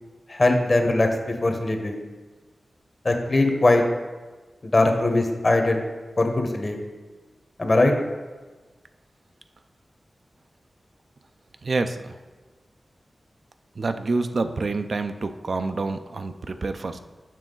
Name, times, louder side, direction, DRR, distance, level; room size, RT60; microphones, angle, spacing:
voice 1, 0.3-1.1 1.4-2.0 3.0-3.8 4.6-5.8 6.2-6.8 7.6-7.9, left 2 dB, 45° left, 4 dB, 1.0 m, -20 dB
voice 2, 11.6-12.2 13.8-17.0, right 3 dB, 60° right, 8 dB, 0.4 m, -27 dB
7.3 x 5.7 x 3.8 m, 1.3 s
cardioid pair, 60°, 0 cm